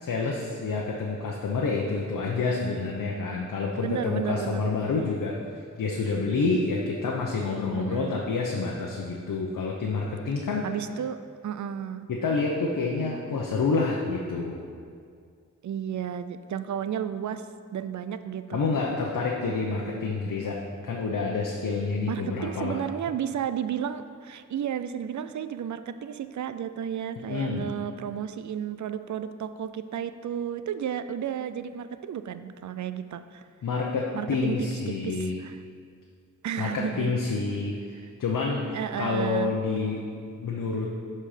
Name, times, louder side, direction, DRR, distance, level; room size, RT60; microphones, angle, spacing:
voice 1, 0.0-5.4 5.8-10.7 12.1-14.6 18.5-22.8 27.2-27.7 33.6-35.4 36.6-40.0 40.3-40.9, left 4 dB, 85° left, -2 dB, 0.9 m, -28 dB
voice 2, 3.8-4.8 7.7-8.3 10.6-11.2 11.4-12.1 15.6-17.5 17.7-18.7 22.1-33.4 34.1-35.6 36.4-37.2 38.0-38.1 38.7-39.5, right 8 dB, 65° right, 11 dB, 0.4 m, -33 dB
11.5 x 4.3 x 5.0 m, 2.2 s
wide cardioid pair, 140°, 32 cm